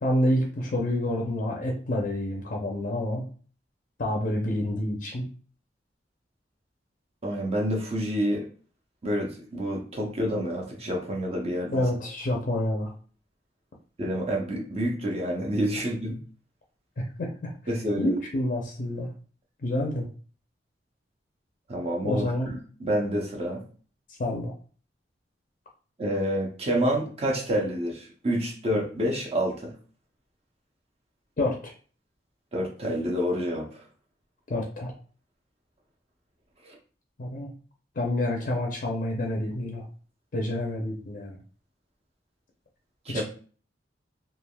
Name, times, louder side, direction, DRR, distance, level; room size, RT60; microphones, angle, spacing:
voice 1, 0.0-3.3 4.0-5.3 11.7-12.9 17.0-17.5 18.0-19.1 19.6-20.1 22.0-22.5 24.2-24.5 31.4-31.7 34.5-34.9 37.2-37.5 38.0-39.9 40.3-41.4 43.1-43.2, left 1 dB, 50° left, 1 dB, 0.5 m, -28 dB
voice 2, 7.2-8.5 9.0-11.8 14.0-16.2 17.7-18.2 21.7-23.6 26.0-29.7 32.5-33.7 36.6-36.8 43.1-43.2, equal, 35° right, 0 dB, 0.7 m, -28 dB
3.2 x 2.4 x 2.2 m, 0.41 s
head